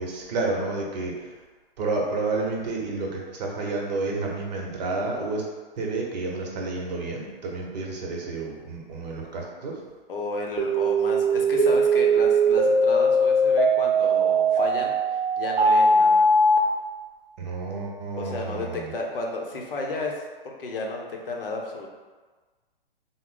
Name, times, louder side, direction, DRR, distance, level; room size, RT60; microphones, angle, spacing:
voice 1, 0.0-1.3 1.8-5.4 5.8-9.8 17.4-18.9, right 3 dB, 45° right, -1 dB, 0.8 m, -30 dB
voice 2, 10.1-16.2 18.2-20.1 20.4-21.9, left 2 dB, 65° left, 0 dB, 0.7 m, -33 dB
sound 1, 10.6-16.6, right 2 dB, 80° right, 0.7 m, -20 dB
3.8 x 2.0 x 3.7 m, 1.4 s
figure-of-eight pair, 120°, 30 cm